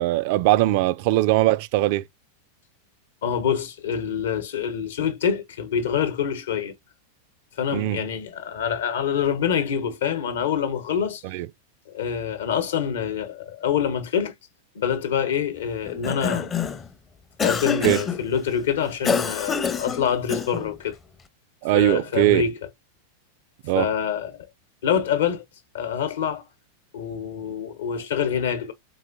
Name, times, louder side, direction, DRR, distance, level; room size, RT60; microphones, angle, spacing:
voice 1, 0.0-2.0 7.7-8.0 11.3-11.5 17.8-18.0 21.6-22.4 23.6-23.9, right 17 dB, 45° right, 0.3 m, -20 dB
voice 2, 3.2-6.7 7.6-11.2 11.9-14.3 14.7-16.5 17.4-21.0 21.7-22.5 23.7-24.3 24.8-25.4 25.7-26.4 26.9-28.7, left 8 dB, 60° left, 1.0 m, -26 dB
Cough, 15.9-16.9 17.4-18.2 19.0-20.7, left 6 dB, 20° left, 0.6 m, -26 dB
3.8 x 3.7 x 2.5 m
figure-of-eight pair, 90°, 0 cm